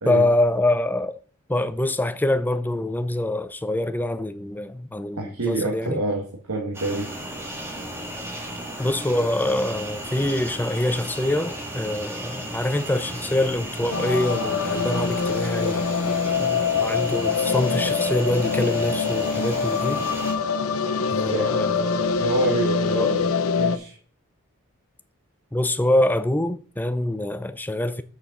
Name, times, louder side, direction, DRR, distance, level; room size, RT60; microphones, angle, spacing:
voice 1, 0.1-1.2 1.5-6.0 8.8-15.9 16.4-20.0 21.1-22.1 22.9-23.1 25.5-28.0, left 1 dB, 10° left, 0.5 m, -25 dB
voice 2, 5.2-7.1 21.3-21.5 22.2-24.0, right 2 dB, 85° right, 1.5 m, -27 dB
sound 1, 6.7-20.3, right 1 dB, 10° right, 1.7 m, -34 dB
sound 2, 13.9-23.8, left 5 dB, 70° left, 0.7 m, -24 dB
6.5 x 6.1 x 5.3 m
head